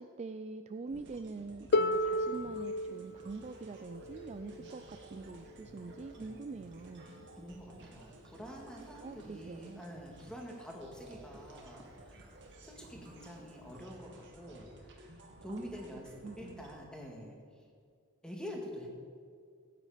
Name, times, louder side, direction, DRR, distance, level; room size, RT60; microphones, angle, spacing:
voice 1, 0.0-7.1 9.0-9.8 15.5-16.7, right 3 dB, 30° right, 8 dB, 0.3 m, -45 dB
sound 1, 0.9-16.7, right 1 dB, 55° right, 2.2 m, -55 dB
Harp, 1.7-7.5 8.6-8.7, left 1 dB, 50° left, 0.5 m, -36 dB
voice 2, 7.0-12.3 12.6-17.6 18.2-18.9, equal, 5° left, -1 dB, 2.1 m, -47 dB
15.5 x 9.6 x 5.0 m, 2.2 s
head